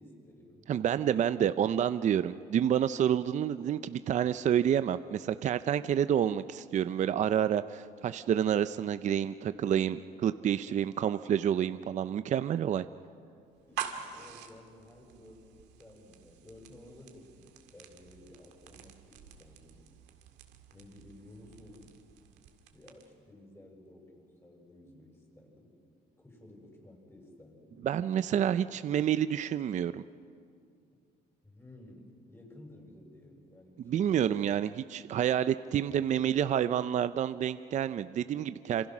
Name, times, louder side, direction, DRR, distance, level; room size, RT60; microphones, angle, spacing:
voice 1, 0.0-1.2 10.6-10.7 13.7-19.8 20.7-22.0 22.7-25.8 26.2-27.8 28.2-28.4 31.4-34.3, left 1 dB, 15° left, 0 dB, 6.7 m, -54 dB
voice 2, 0.7-12.8 27.8-30.0 33.9-38.9, right 9 dB, 45° right, 12 dB, 0.5 m, -29 dB
sound 1, 13.5-23.3, right 9 dB, 90° right, 2.0 m, -46 dB
27.0 x 27.0 x 6.1 m, 2.4 s
cardioid pair, 110°, 17 cm